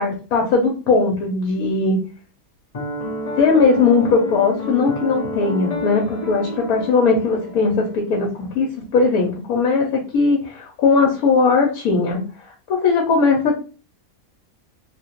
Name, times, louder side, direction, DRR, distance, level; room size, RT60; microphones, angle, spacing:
voice 1, 0.0-2.0 3.4-12.2 12.7-13.6, left 4 dB, 85° left, 0 dB, 1.2 m, -18 dB
Piano, 2.7-8.0, left 2 dB, 40° left, 0.5 m, -29 dB
2.9 x 2.5 x 2.8 m, 0.36 s
omnidirectional pair, 1.5 m